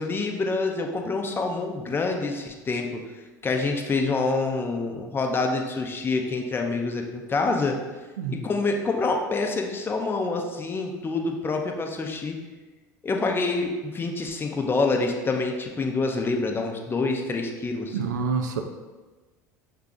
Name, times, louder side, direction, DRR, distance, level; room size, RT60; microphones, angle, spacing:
voice 1, 0.0-3.0 3.4-7.8 8.3-12.4 13.0-18.0, left 3 dB, 20° left, 3 dB, 0.6 m, -26 dB
voice 2, 17.9-18.6, right 5 dB, 75° right, 5 dB, 0.5 m, -27 dB
5.5 x 2.4 x 3.7 m, 1.2 s
figure-of-eight pair, 75°, 10 cm